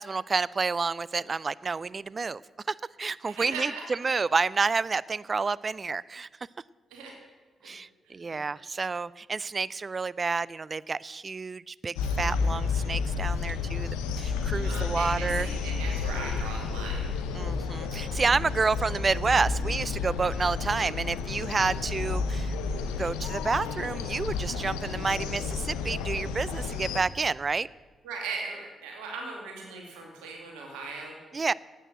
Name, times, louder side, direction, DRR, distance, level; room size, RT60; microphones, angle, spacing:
voice 1, 0.0-2.4 2.7-6.3 7.6-15.5 17.3-22.5 23.0-27.7 31.3-31.5, right 4 dB, 40° right, 21 dB, 0.4 m, -29 dB
voice 2, 3.4-3.8 6.9-7.1 7.6-7.7 8.1-8.4 14.6-17.1 28.0-31.2, right 4 dB, 80° right, 0 dB, 2.2 m, -38 dB
sound 1, 12.0-27.0, left 5 dB, 85° left, 0.8 m, -31 dB
11.0 x 8.9 x 7.8 m, 1.3 s
hypercardioid pair, 40°, 0 cm